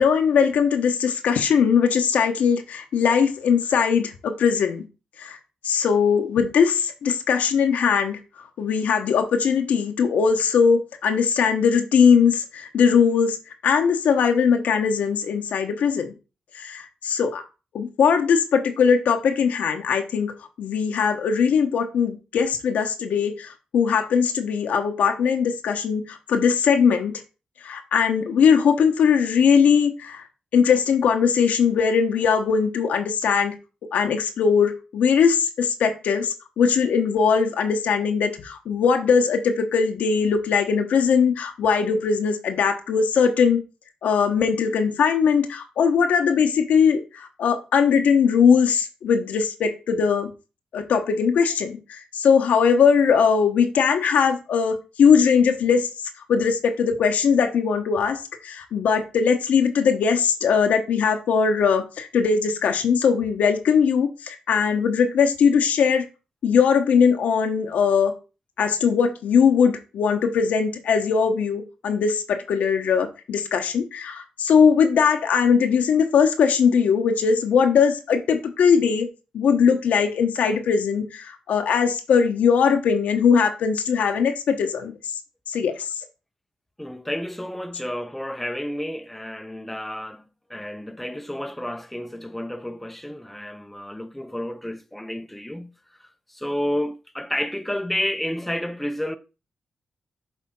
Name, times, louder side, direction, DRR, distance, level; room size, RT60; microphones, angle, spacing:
voice 1, 0.0-4.8 5.2-5.4 5.6-16.1 16.5-17.4 17.7-27.2 27.6-30.3 30.5-33.5 33.9-43.6 44.0-50.3 50.7-66.1 66.4-68.1 68.6-79.1 79.3-85.2 85.5-86.0, left 6 dB, 85° left, 1.2 m, -20 dB
voice 2, 86.8-90.2 90.5-95.7 96.0-99.2, left 1 dB, 5° left, 0.7 m, -30 dB
7.2 x 3.6 x 5.5 m
cardioid pair, 65°, 2 cm